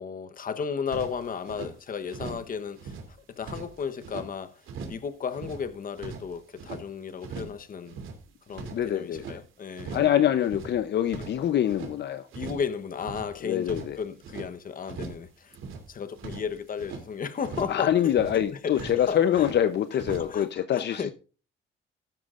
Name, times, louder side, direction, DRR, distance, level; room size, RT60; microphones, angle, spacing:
voice 1, 0.0-4.6 4.9-8.0 8.5-10.3 11.2-11.3 12.3-15.5 15.9-19.5 19.9-21.1, left 6 dB, 45° left, 1.1 m, -34 dB
sound 1, 0.9-1.7 2.1-2.5 2.7-4.3 4.6-5.0 5.3-6.8 7.2-7.6 7.9-9.4 9.7-10.2 10.4-11.9 12.3-12.7 13.0-14.5 14.8-15.3 15.5-17.0 17.4-17.8 18.1-18.5 18.7-19.6 20.0-20.4, right 5 dB, 80° right, 2.9 m, -40 dB
voice 2, 8.7-9.3 9.9-12.3 13.4-14.0 17.7-21.1, left 10 dB, 60° left, 0.7 m, -25 dB
14.0 x 12.0 x 2.5 m
cardioid pair, 90°, 20 cm